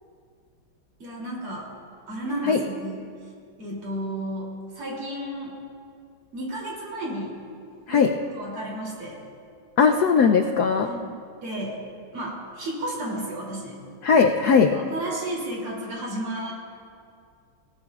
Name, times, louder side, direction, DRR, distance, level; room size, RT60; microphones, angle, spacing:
voice 1, 1.0-1.7 2.1-3.0 3.6-5.5 6.3-7.4 7.9-9.2 10.8-11.1 11.4-11.8 12.1-13.8 14.6-16.5, right 1 dB, 80° right, -3 dB, 3.9 m, -32 dB
voice 2, 9.8-10.9 14.0-14.7, left 5 dB, 80° left, 3 dB, 0.8 m, -18 dB
20.5 x 18.0 x 2.4 m, 2.3 s
omnidirectional pair, 2.4 m